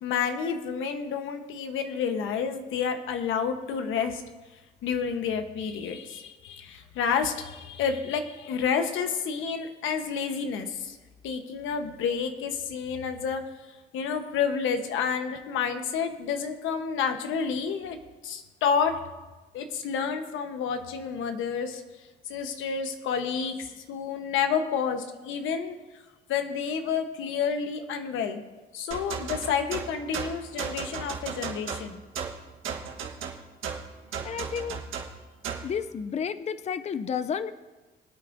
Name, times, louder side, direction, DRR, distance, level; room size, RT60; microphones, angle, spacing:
voice 1, 0.0-4.2 4.8-11.0 11.2-13.4 13.9-18.0 18.2-19.0 19.5-21.8 22.3-25.8 26.3-28.4 28.7-32.0, left 6 dB, 85° left, 6 dB, 1.1 m, -29 dB
sound 1, 28.9-35.7, right 6 dB, 85° right, 1.5 m, -35 dB
voice 2, 34.2-34.8 35.6-37.5, left 7 dB, 35° left, 13 dB, 0.5 m, -31 dB
23.0 x 8.7 x 2.7 m, 1.2 s
cardioid pair, 90°, 20 cm